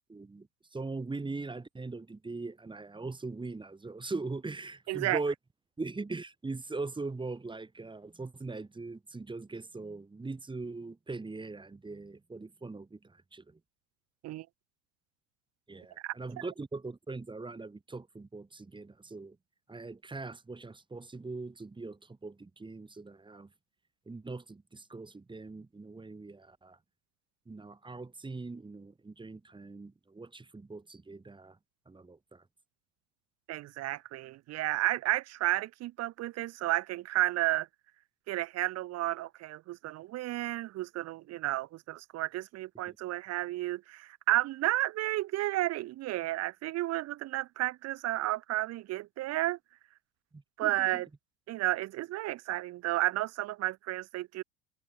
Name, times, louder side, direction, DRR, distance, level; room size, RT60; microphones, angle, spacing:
voice 1, 0.1-5.3 5.8-13.6 15.7-19.4 19.7-23.5 24.1-26.8 27.5-31.6 31.9-32.4 42.9-43.0 50.3-50.9, right 3 dB, 10° right, 2.3 m, -41 dB
voice 2, 4.9-5.2 14.2-14.5 16.0-16.1 33.5-37.7 38.3-49.6 50.6-51.1 51.5-54.4, right 16 dB, 30° right, 1.0 m, -32 dB
figure-of-eight pair, 80°, 49 cm